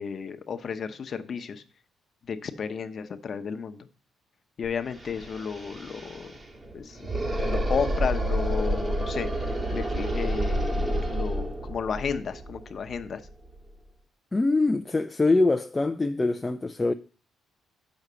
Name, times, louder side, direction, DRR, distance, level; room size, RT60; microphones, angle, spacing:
voice 1, 0.0-1.6 2.3-3.9 4.6-6.3 6.7-7.0 7.4-9.4 9.7-13.2, left 6 dB, 50° left, 0.9 m, -33 dB
sound 1, 4.7-4.8 4.9-13.8, right 1 dB, 35° right, 2.3 m, -29 dB
voice 2, 14.3-16.9, left 3 dB, 20° left, 0.4 m, -24 dB
6.4 x 6.2 x 6.8 m
cardioid pair, 90°, 0 cm